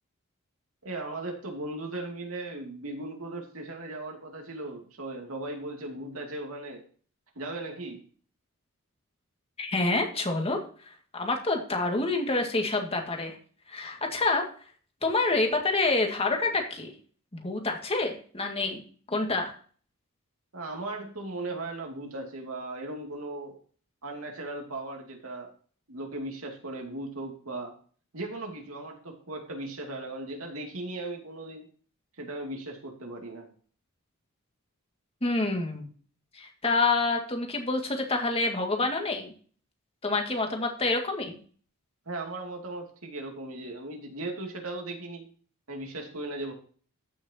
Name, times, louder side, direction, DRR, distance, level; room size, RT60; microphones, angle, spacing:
voice 1, 0.8-6.8 7.3-8.0 20.5-23.6 24.0-25.5 25.9-27.7 28.1-31.7 32.2-33.5 42.1-45.3 45.7-46.5, right 2 dB, 80° right, 2 dB, 2.6 m, -37 dB
voice 2, 9.6-10.6 11.1-13.4 13.7-14.5 15.0-16.9 17.3-18.8 19.1-19.5 35.2-35.9 36.3-39.3 40.0-41.3, left 3 dB, 30° left, 3 dB, 2.0 m, -27 dB
14.5 x 6.3 x 2.9 m, 0.44 s
head